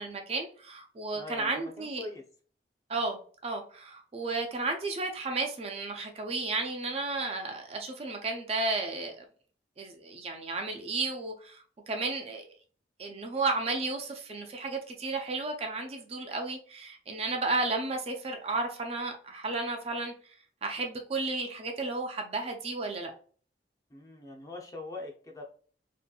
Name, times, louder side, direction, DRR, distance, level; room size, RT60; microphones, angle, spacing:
voice 1, 0.0-2.0 2.9-9.2 9.8-12.5 13.0-20.1 20.6-23.1, right 3 dB, 35° right, 0.4 m, -33 dB
voice 2, 1.1-2.2 23.9-25.4, left 2 dB, 20° left, 0.5 m, -42 dB
2.7 x 2.5 x 2.3 m
head